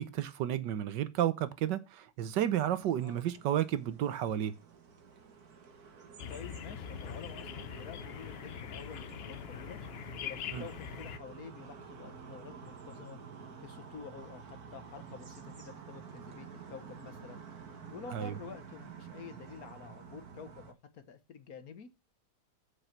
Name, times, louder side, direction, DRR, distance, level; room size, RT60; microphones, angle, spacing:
voice 1, 0.0-4.5 10.5-10.7 18.1-18.3, right 11 dB, 90° right, 1.5 m, -32 dB
sound 1, 2.3-20.7, right 6 dB, 60° right, 1.9 m, -50 dB
sound 2, 6.2-11.2, left 9 dB, 85° left, 0.5 m, -43 dB
voice 2, 6.3-9.8 10.2-13.2 13.6-17.4 17.9-21.9, left 6 dB, 60° left, 1.6 m, -49 dB
8.0 x 6.3 x 5.9 m
omnidirectional pair, 1.8 m